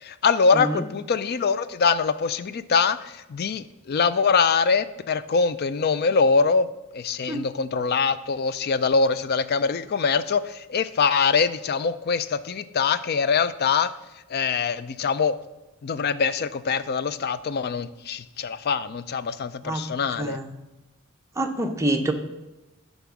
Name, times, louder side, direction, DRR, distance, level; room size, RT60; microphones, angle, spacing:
voice 1, 0.0-6.7 6.9-13.9 14.3-15.3 15.8-20.4, left 5 dB, 45° left, 14 dB, 0.3 m, -23 dB
voice 2, 0.5-0.9 7.3-7.4 19.6-19.9 20.2-20.5 21.4-22.1, right 1 dB, 15° right, 4 dB, 0.6 m, -26 dB
10.5 x 4.2 x 5.9 m, 1.0 s
head